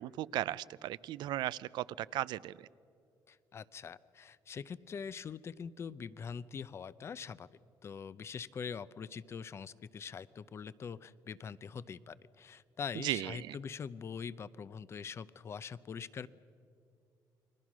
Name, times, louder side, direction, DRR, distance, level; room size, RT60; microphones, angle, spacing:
voice 1, 0.0-2.7 12.9-13.6, right 14 dB, 85° right, 18 dB, 0.5 m, -36 dB
voice 2, 3.3-7.5 7.8-16.3, left 6 dB, 35° left, 17 dB, 0.6 m, -43 dB
30.0 x 22.0 x 6.2 m, 2.5 s
cardioid pair, 140°, 7 cm